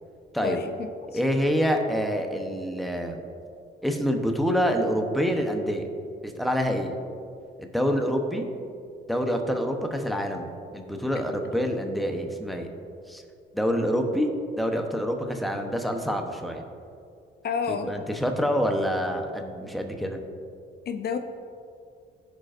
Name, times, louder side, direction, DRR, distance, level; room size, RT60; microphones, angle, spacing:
voice 1, 0.4-0.7 1.1-1.2 17.4-17.9 20.9-21.2, left 6 dB, 55° left, 7 dB, 0.5 m, -29 dB
voice 2, 1.1-3.2 3.8-5.9 6.2-6.9 7.6-8.4 9.1-12.7 13.1-13.2 13.5-14.3 14.6-16.6 17.7-20.2, equal, ahead, 4 dB, 0.8 m, -26 dB
14.0 x 5.2 x 2.5 m, 2.4 s
cardioid pair, 90°, 20 cm